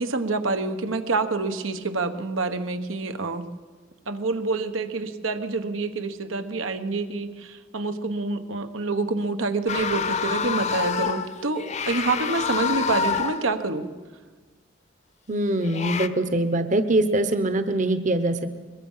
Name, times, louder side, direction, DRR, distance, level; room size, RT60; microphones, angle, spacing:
voice 1, 0.0-3.4 4.1-13.8, right 3 dB, 90° right, 8 dB, 1.3 m, -27 dB
sound 1, 9.7-13.5 15.6-16.1, left 6 dB, 35° left, 0.8 m, -27 dB
voice 2, 15.3-18.6, right 1 dB, 40° right, 10 dB, 0.9 m, -23 dB
22.0 x 21.5 x 5.7 m, 1.4 s
head